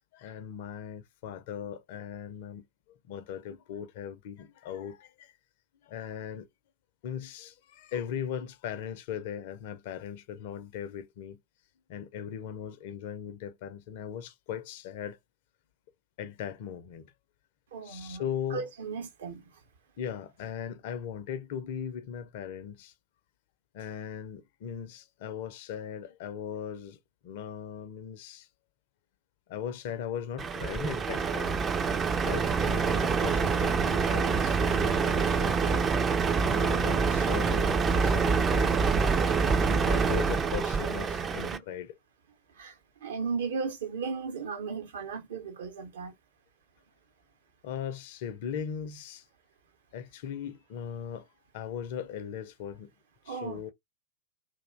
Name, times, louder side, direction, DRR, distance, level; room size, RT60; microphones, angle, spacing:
voice 1, 0.1-2.6 3.1-5.3 5.8-6.5 7.0-11.4 11.9-15.2 16.2-17.1 17.8-18.7 20.0-22.9 23.7-28.5 29.5-31.6 32.3-35.9 36.4-38.8 39.5-42.0 47.6-49.2 49.9-51.3 51.5-52.9 53.3-53.7, left 8 dB, 50° left, 0.4 m, -38 dB
voice 2, 17.7-18.2 18.5-19.4 39.7-40.3 41.2-41.6 42.6-42.7 43.0-46.1 53.3-53.6, right 5 dB, 60° right, 0.7 m, -36 dB
Truck, 30.4-41.6, right 5 dB, 25° right, 0.4 m, -26 dB
2.4 x 2.1 x 3.2 m
figure-of-eight pair, 90°, 0 cm